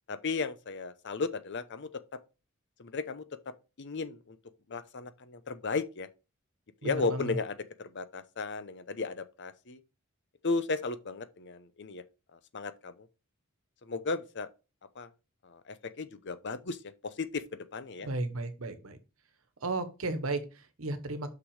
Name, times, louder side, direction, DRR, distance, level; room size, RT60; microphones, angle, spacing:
voice 1, 0.1-1.9 2.8-3.2 3.8-4.4 4.7-6.1 6.8-9.8 10.4-12.0 12.3-13.1 13.8-14.5 15.0-15.1 15.4-18.1, left 4 dB, 60° left, 0.7 m, -35 dB
voice 2, 6.8-7.4 18.0-19.0 19.6-21.3, right 2 dB, 80° right, 1.2 m, -34 dB
6.1 x 6.0 x 4.8 m
head